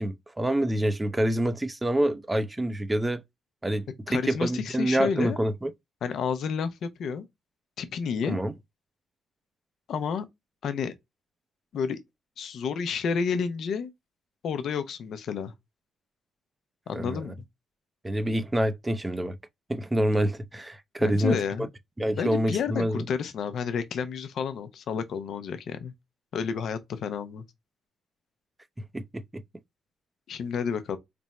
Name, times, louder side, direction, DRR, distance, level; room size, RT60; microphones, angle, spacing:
voice 1, 0.0-3.2 3.6-5.7 8.2-8.5 16.9-17.3 18.0-19.4 19.7-21.4 22.0-23.1 28.9-29.4, right 1 dB, 15° right, 0.5 m, -27 dB
voice 2, 4.1-5.4 6.0-7.3 7.8-8.4 9.9-10.2 10.6-10.9 11.7-12.0 12.4-13.9 14.4-15.5 16.9-17.3 21.0-21.7 22.2-25.9 26.3-27.4 30.3-31.0, left 6 dB, 65° left, 0.6 m, -30 dB
3.4 x 2.1 x 4.0 m
cardioid pair, 90°, 0 cm